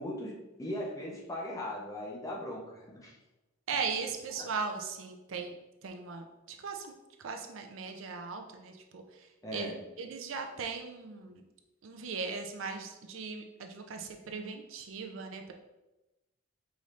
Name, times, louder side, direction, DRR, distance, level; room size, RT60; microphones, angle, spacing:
voice 1, 0.0-3.2 4.3-4.5 9.4-9.8, left 1 dB, 15° left, -3 dB, 0.7 m, -39 dB
voice 2, 3.7-5.6 5.8-6.9 7.2-11.4 11.8-15.5, right 5 dB, 65° right, 4 dB, 0.4 m, -38 dB
4.9 x 2.6 x 3.1 m, 1.0 s
head